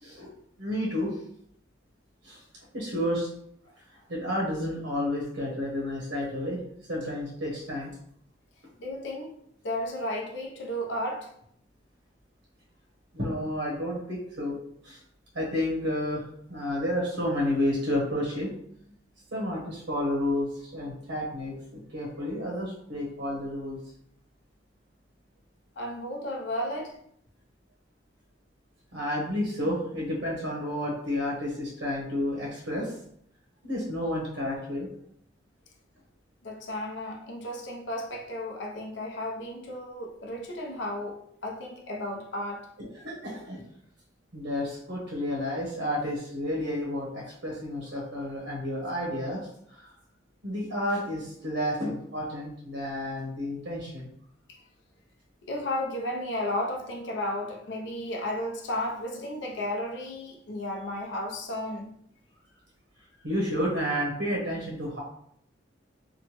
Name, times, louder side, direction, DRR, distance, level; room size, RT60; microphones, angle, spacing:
voice 1, 0.6-1.2 2.2-2.4 2.7-3.3 4.1-6.6 6.9-7.9 13.1-14.6 14.8-15.0 15.3-18.5 19.3-23.8 28.9-32.9 33.6-34.9 42.8-43.6 44.3-49.4 49.7-49.9 50.4-54.1 63.2-65.0, left 1 dB, 75° right, 0.8 m, -31 dB
voice 2, 8.8-9.4 9.6-11.3 25.8-27.0 36.4-42.7 54.5-54.6 55.4-61.9, left 1 dB, 70° left, 0.5 m, -33 dB
2.9 x 2.1 x 2.9 m
head